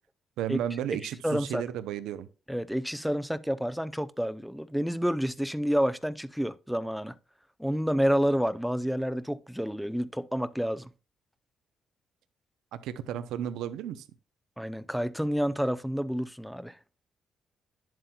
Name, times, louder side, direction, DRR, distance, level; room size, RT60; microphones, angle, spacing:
voice 1, 0.4-2.3 12.7-14.1, right 10 dB, 90° right, 0.6 m, -33 dB
voice 2, 1.2-1.6 2.5-7.1 7.6-10.9 14.6-16.7, equal, ahead, 0.6 m, -29 dB
10.5 x 7.6 x 2.3 m
cardioid pair, 90°, 0 cm